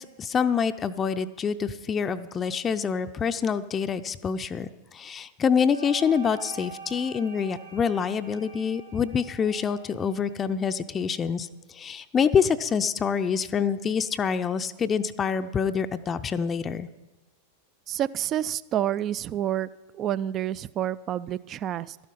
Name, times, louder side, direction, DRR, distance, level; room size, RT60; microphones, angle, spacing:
voice 1, 0.0-16.9, left 6 dB, 20° left, 10 dB, 0.5 m, -26 dB
sound 1, 5.7-10.8, right 4 dB, 90° right, 4.4 m, -45 dB
voice 2, 17.9-19.7 19.9-22.0, right 11 dB, 30° right, 19 dB, 0.3 m, -28 dB
12.5 x 12.0 x 5.4 m, 1.1 s
figure-of-eight pair, 90°, 0 cm